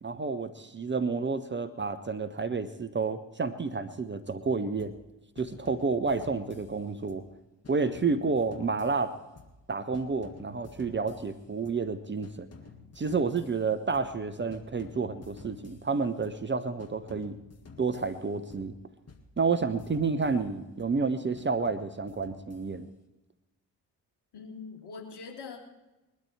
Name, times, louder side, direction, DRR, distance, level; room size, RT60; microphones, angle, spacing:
voice 1, 0.0-4.9 5.4-7.2 7.7-9.1 9.7-12.5 13.0-17.3 17.8-18.7 19.4-22.9, right 4 dB, 25° right, 9 dB, 0.9 m, -30 dB
sound 1, 4.8-5.1 5.4-7.3 7.6-9.7 9.9-11.9 12.2-14.2 14.5-16.5 16.8-18.8 19.1-21.0 21.4-23.0, left 4 dB, 30° left, 2.0 m, -52 dB
voice 2, 24.3-25.6, left 5 dB, 55° left, 1 dB, 3.0 m, -42 dB
21.0 x 12.5 x 3.4 m, 1.0 s
figure-of-eight pair, 40°, 48 cm